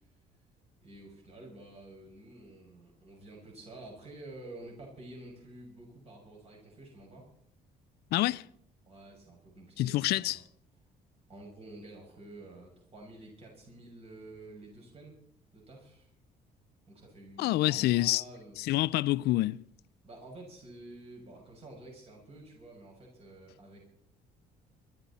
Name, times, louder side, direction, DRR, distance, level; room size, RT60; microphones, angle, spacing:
voice 1, 0.8-7.3 8.9-10.4 11.3-15.2 15.5-16.1 16.9-18.6 20.0-23.8, right 2 dB, 35° right, 6.2 m, -50 dB
voice 2, 8.1-8.4 9.8-10.4 17.4-18.2 18.6-19.6, left 17 dB, 75° left, 0.5 m, -27 dB
23.0 x 13.0 x 4.2 m
cardioid pair, 110°, 17 cm